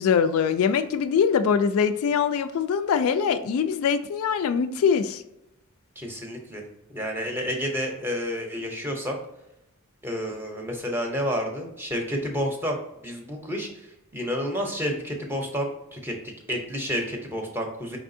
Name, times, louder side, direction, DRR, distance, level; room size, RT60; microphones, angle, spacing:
voice 1, 0.0-5.2, left 6 dB, 70° left, 11 dB, 0.3 m, -23 dB
voice 2, 6.0-6.6 6.9-9.2 10.0-12.8 13.0-13.7 14.1-16.1 16.5-18.0, equal, 10° right, 2 dB, 0.6 m, -30 dB
4.8 x 3.5 x 2.6 m, 0.87 s
head